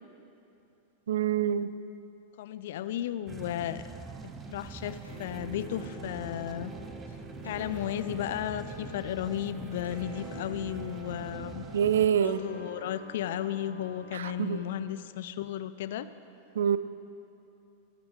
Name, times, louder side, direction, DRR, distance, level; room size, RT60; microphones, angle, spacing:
voice 1, 1.1-1.7 11.7-12.4 14.1-14.6 16.6-16.8, right 9 dB, 65° right, 15 dB, 0.4 m, -26 dB
voice 2, 2.4-3.8 4.5-6.7 7.4-11.7 12.1-16.1, left 11 dB, 55° left, 14 dB, 0.4 m, -34 dB
sound 1, 3.3-12.1, right 5 dB, 20° right, 0.7 m, -44 dB
sound 2, 5.0-14.6, left 1 dB, 85° left, 2.5 m, -46 dB
19.0 x 9.6 x 3.6 m, 2.7 s
figure-of-eight pair, 90°, 0 cm